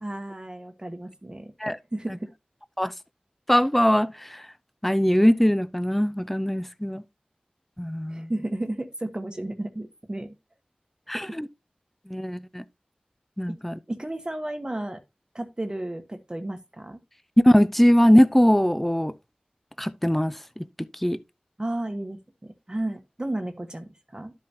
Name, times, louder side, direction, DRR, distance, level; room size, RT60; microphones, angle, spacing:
voice 1, 0.0-1.5 1.9-2.3 8.1-10.3 11.1-11.4 13.5-13.6 13.9-15.0 15.3-17.0 21.6-24.3, right 1 dB, 30° right, 1.1 m, -33 dB
voice 2, 3.5-4.4 4.8-7.0 7.8-8.3 11.1-11.5 12.1-12.6 13.4-13.8 17.4-19.1 19.8-20.6 21.0-21.2, equal, 5° left, 0.5 m, -21 dB
12.0 x 5.4 x 2.8 m
wide cardioid pair, 55°, 3 cm